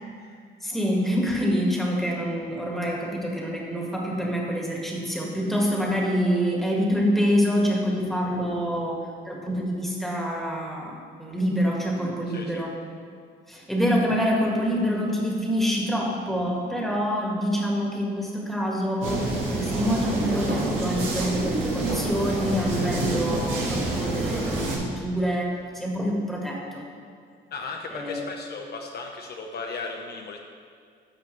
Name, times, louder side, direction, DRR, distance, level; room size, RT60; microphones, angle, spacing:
voice 1, 0.6-9.0 9.2-10.9 11.2-12.7 13.5-26.8 27.9-28.3, equal, ahead, -2 dB, 1.6 m, -26 dB
voice 2, 12.3-12.6 27.5-30.4, left 4 dB, 55° left, 2 dB, 0.7 m, -36 dB
sound 1, 19.0-24.8, right 2 dB, 85° right, 1.8 m, -27 dB
13.0 x 4.9 x 3.2 m, 2.2 s
cardioid pair, 90°, 20 cm